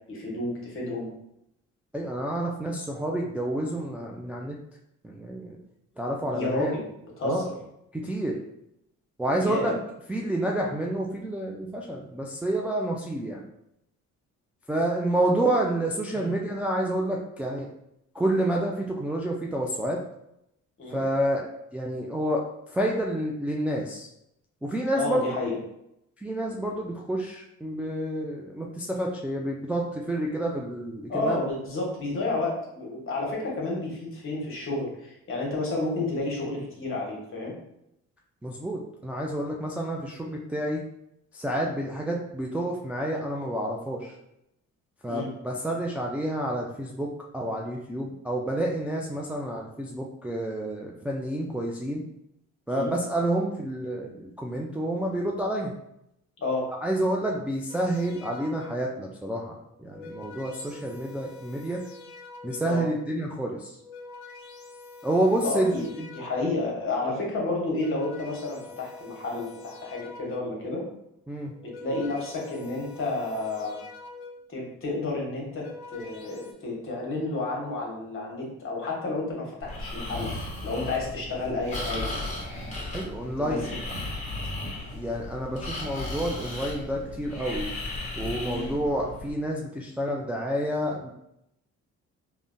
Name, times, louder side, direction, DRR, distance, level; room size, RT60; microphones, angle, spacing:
voice 1, 0.1-1.1 6.2-6.8 7.2-7.5 9.4-9.8 16.1-16.3 20.8-21.0 25.0-25.6 31.1-37.5 45.1-45.3 52.7-52.9 56.4-56.7 62.6-62.8 65.4-65.8 66.1-70.8 71.6-73.8 74.5-75.6 75.9-82.1 83.4-83.8 84.1-84.2 88.4-88.7, left 2 dB, 45° left, -2 dB, 1.1 m, -31 dB
voice 2, 1.9-4.6 5.0-5.6 6.0-6.7 7.2-7.4 7.9-8.4 9.2-9.7 10.1-13.4 14.7-17.7 18.1-20.0 20.9-24.1 24.6-25.2 26.2-31.4 38.4-40.8 41.3-44.1 45.0-52.0 52.7-55.7 56.8-61.8 62.4-63.8 65.0-66.1 71.3-71.5 82.9-83.7 84.9-87.7 88.2-91.1, right 1 dB, 5° right, -2 dB, 0.3 m, -29 dB
sound 1, 57.7-59.0 59.7-62.9 63.6-66.8 67.5-70.7 71.4-74.6 75.3-76.5, left 3 dB, 80° left, 0.5 m, -46 dB
Breathing, 79.6-89.3, left 2 dB, 25° left, 1.0 m, -35 dB
3.6 x 2.1 x 2.5 m, 0.81 s
cardioid pair, 90°, 30 cm